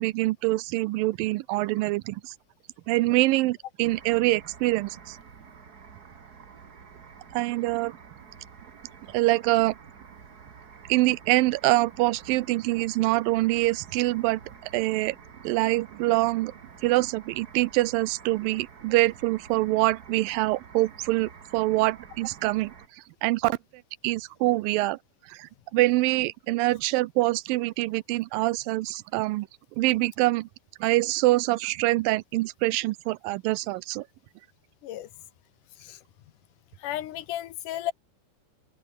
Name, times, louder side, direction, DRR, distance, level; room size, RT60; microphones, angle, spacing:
voice 1, 0.0-2.3 2.9-5.2 7.3-7.9 9.1-9.7 10.9-14.4 14.7-15.2 15.4-16.5 16.8-22.7 23.2-23.6 24.0-25.0 25.3-29.5 29.8-30.5 30.8-34.1, right 19 dB, 85° right, 2.4 m, -25 dB
sound 1, 3.8-22.9, right 6 dB, 35° right, 1.7 m, -49 dB
voice 2, 36.8-37.9, left 13 dB, 75° left, 2.5 m, -34 dB
open air
omnidirectional pair, 4.0 m